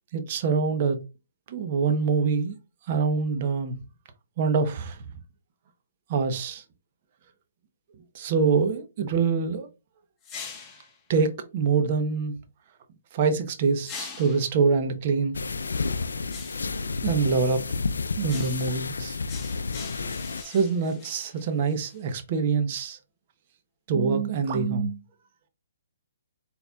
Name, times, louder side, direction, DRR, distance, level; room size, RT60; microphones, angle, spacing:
voice 1, 0.1-1.0 1.5-2.6 2.9-3.8 4.4-5.0 6.1-6.6 8.1-9.7 11.1-12.4 13.1-15.4 17.0-17.6 18.2-19.2 20.4-23.0 23.9-25.0, right 5 dB, 40° right, 0.7 m, -25 dB
sound 1, 10.2-10.9 13.8-14.6 16.3-16.8 18.2-18.8 19.3-22.0, left 6 dB, 15° left, 0.8 m, -42 dB
sound 2, 15.3-20.4, left 4 dB, 90° left, 0.3 m, -30 dB
4.2 x 4.1 x 2.2 m
hypercardioid pair, 150°, 0 cm